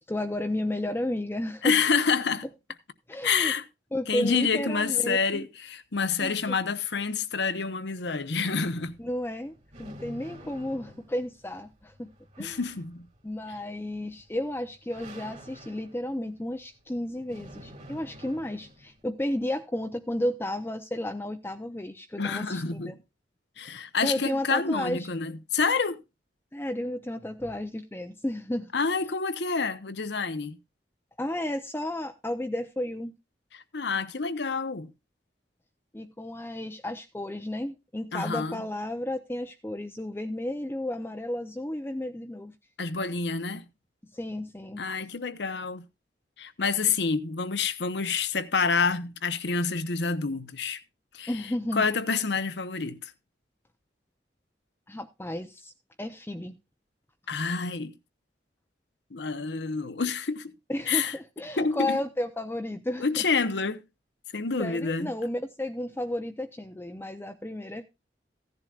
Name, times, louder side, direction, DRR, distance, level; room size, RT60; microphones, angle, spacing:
voice 1, 0.1-1.8 3.1-3.5 3.9-5.5 6.2-6.6 9.0-12.1 12.4-12.6 13.2-23.0 24.0-25.1 26.5-28.7 31.2-33.1 35.9-42.5 44.1-44.8 51.3-51.9 54.9-55.7 56.0-56.6 60.7-63.1 64.6-67.8, left 1 dB, 15° left, 0.6 m, -32 dB
voice 2, 1.6-2.4 3.2-3.6 4.1-9.0 12.4-13.1 22.2-23.0 23.6-26.0 28.7-30.6 33.5-34.9 38.1-38.6 42.8-43.7 44.8-45.8 46.4-50.8 51.1-51.3 51.7-53.1 57.3-57.9 59.1-60.5 60.9-61.1 61.6-62.0 63.0-63.8 64.3-65.1, left 5 dB, 70° left, 0.9 m, -28 dB
sound 1, 8.6-19.0, equal, 40° right, 2.3 m, -50 dB
15.5 x 10.5 x 2.4 m
head